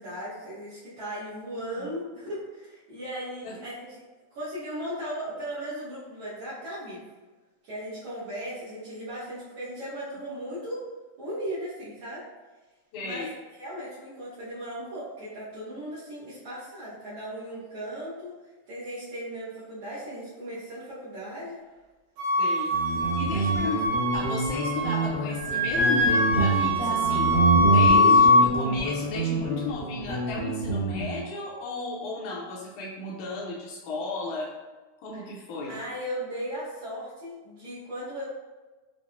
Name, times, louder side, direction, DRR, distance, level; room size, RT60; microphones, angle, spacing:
voice 1, 0.0-3.9 4.3-7.0 7.6-10.8 11.2-12.2 13.0-13.3 13.6-18.3 18.7-21.6 35.1-35.3 35.7-38.2, equal, 65° right, -12 dB, 1.3 m, -37 dB
voice 2, 12.9-13.3 22.4-22.7 23.2-23.8 24.1-34.5 35.0-35.7, left 2 dB, 75° left, -5 dB, 1.6 m, -34 dB
Wind instrument woodwind instrument, 22.2-25.1 25.4-28.4, left 1 dB, 85° right, 2.5 m, -22 dB
Guitar, 22.7-31.2, right 3 dB, 55° left, 0.9 m, -27 dB
5.8 x 2.0 x 2.4 m, 1.2 s
omnidirectional pair, 3.4 m